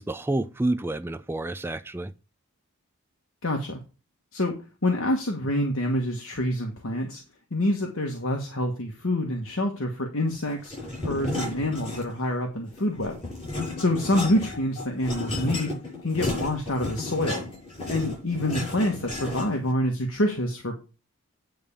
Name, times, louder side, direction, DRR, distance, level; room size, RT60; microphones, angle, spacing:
voice 1, 0.0-2.1, right 2 dB, 10° right, 0.4 m, -29 dB
voice 2, 3.4-3.8 4.3-4.5 4.8-7.2 7.5-10.7 11.0-13.2 13.8-15.8 16.0-17.4 17.9-20.8, left 1 dB, 65° left, 1.3 m, -26 dB
sound 1, 10.6-12.3 12.7-19.7, left 2 dB, 25° left, 5.8 m, -33 dB
9.2 x 3.5 x 6.8 m
head